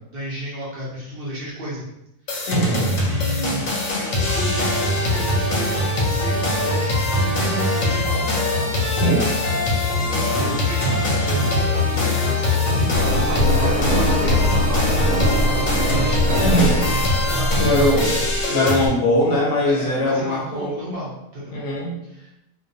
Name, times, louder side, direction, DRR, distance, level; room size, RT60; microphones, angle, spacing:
voice 1, 0.1-1.9 2.3-2.5 3.1-3.7 4.0-8.3 8.7-8.9 9.7-13.0 13.2-18.2 19.6-21.6 22.0-22.3, right 1 dB, 55° right, -6 dB, 0.7 m, -32 dB
sound 1, 2.3-18.9, left 2 dB, 85° left, 1.0 m, -22 dB
voice 2, 2.5-3.0 9.0-9.3 16.4-16.8 17.6-18.1 18.5-20.7 21.5-21.9, left 1 dB, 70° left, -3 dB, 0.9 m, -20 dB
Engine, 13.0-18.4, equal, 90° right, 1.0 m, -22 dB
2.3 x 2.1 x 2.6 m, 0.85 s
omnidirectional pair, 1.4 m